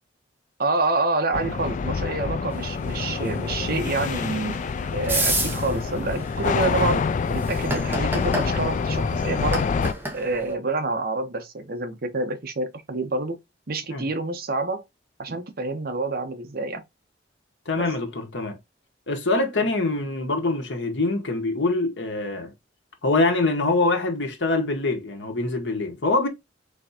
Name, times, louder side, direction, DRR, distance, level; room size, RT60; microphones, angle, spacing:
voice 1, 0.6-4.6 4.9-9.7 10.1-13.4 13.7-14.8 15.2-16.8 17.8-17.9, right 3 dB, 55° right, 0.9 m, -27 dB
sound 1, 1.3-9.9, left 5 dB, 45° left, 0.3 m, -26 dB
sound 2, 2.5-10.5, right 2 dB, 10° right, 1.2 m, -32 dB
voice 2, 17.7-18.6 19.1-22.5 23.0-26.3, left 2 dB, 85° left, 1.3 m, -24 dB
4.6 x 3.5 x 2.8 m
head